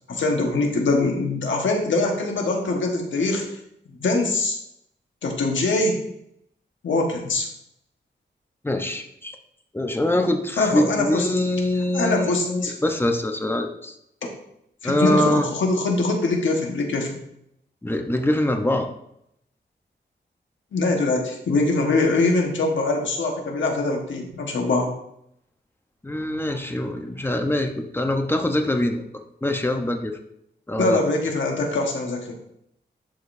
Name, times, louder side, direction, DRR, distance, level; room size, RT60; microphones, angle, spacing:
voice 1, 0.1-3.4 4.0-4.6 5.2-6.0 6.8-7.5 10.6-11.3 11.9-12.7 14.2-14.3 14.8-17.2 20.7-24.9 30.8-32.3, left 2 dB, 90° left, 1 dB, 1.4 m, -23 dB
voice 2, 8.6-9.4 9.7-14.0 14.8-15.5 17.8-18.9 26.0-29.0 29.4-30.2 30.7-31.0, left 1 dB, 10° left, 5 dB, 0.8 m, -24 dB
11.0 x 5.1 x 2.7 m, 0.77 s
wide cardioid pair, 115°, 19 cm